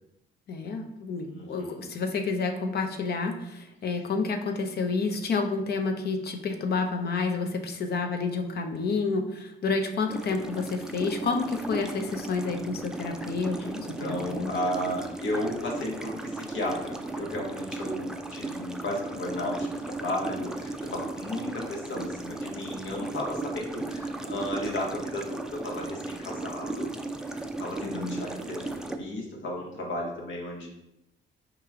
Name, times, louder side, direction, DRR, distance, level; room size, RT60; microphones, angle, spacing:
voice 1, 0.5-14.5 27.8-28.2, left 4 dB, 55° left, 5 dB, 0.7 m, -29 dB
voice 2, 1.2-1.9 13.6-26.9 27.2-30.7, left 1 dB, 70° left, -1 dB, 1.3 m, -34 dB
sound 1, 10.1-29.0, right 2 dB, 5° right, 0.4 m, -36 dB
4.8 x 3.0 x 3.7 m, 0.88 s
cardioid pair, 90°, 20 cm